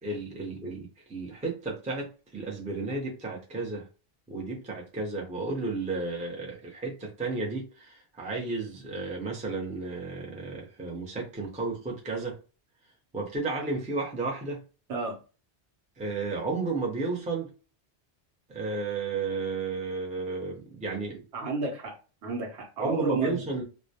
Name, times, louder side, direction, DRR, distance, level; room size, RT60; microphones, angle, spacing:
voice 1, 0.0-3.9 4.3-12.4 13.1-14.6 16.0-17.5 18.5-21.2 22.8-23.6, right 3 dB, 10° right, 0.4 m, -33 dB
voice 2, 21.3-22.0 22.2-23.4, right 3 dB, 80° right, 0.9 m, -31 dB
2.2 x 2.1 x 2.7 m
omnidirectional pair, 1.1 m